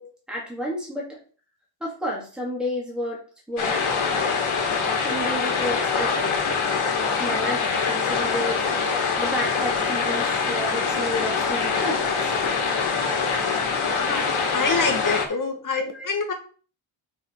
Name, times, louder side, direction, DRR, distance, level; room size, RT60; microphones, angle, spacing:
voice 1, 0.3-1.2 1.8-3.2 3.5-3.8 5.0-6.3 7.2-8.6 8.9-12.3 14.8-15.0 15.9-16.1, equal, ahead, -4 dB, 2.6 m, -31 dB
sound 1, 3.6-15.3, left 5 dB, 80° left, 1.8 m, -24 dB
voice 2, 14.0-16.3, left 4 dB, 40° left, 4 dB, 1.7 m, -26 dB
6.1 x 5.6 x 4.8 m, 0.39 s
wide cardioid pair, 165°, 49 cm